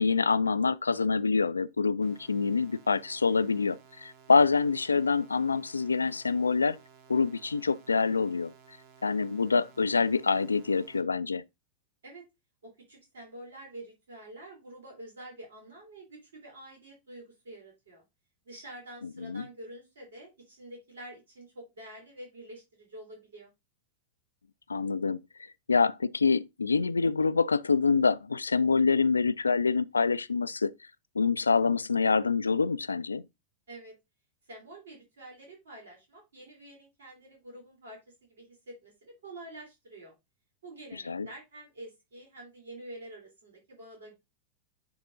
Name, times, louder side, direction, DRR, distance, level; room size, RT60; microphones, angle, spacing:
voice 1, 0.0-6.8 7.1-8.5 9.0-11.4 19.2-19.5 24.7-25.2 25.7-30.7 31.2-33.2 40.9-41.3, left 4 dB, 75° left, 0.3 m, -26 dB
sound 1, 2.0-11.0, right 7 dB, 50° right, 1.3 m, -57 dB
voice 2, 12.6-18.0 18.4-23.5 33.7-33.9 34.5-40.1 40.6-44.1, right 1 dB, 70° right, 3.3 m, -47 dB
9.8 x 3.7 x 3.8 m
figure-of-eight pair, 90°, 0 cm